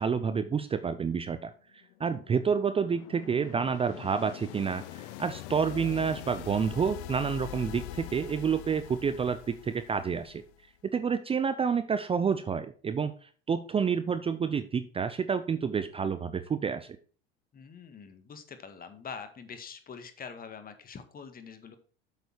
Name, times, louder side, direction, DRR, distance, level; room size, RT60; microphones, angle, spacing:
voice 1, 0.0-1.5 2.0-10.4 10.8-17.0, right 6 dB, 20° right, 11 dB, 0.6 m, -29 dB
sound 1, 1.8-10.7, left 15 dB, 65° left, 0.9 m, -44 dB
voice 2, 17.5-21.8, left 6 dB, 30° left, 9 dB, 1.7 m, -44 dB
8.2 x 6.9 x 4.6 m, 0.41 s
hypercardioid pair, 90°, 30 cm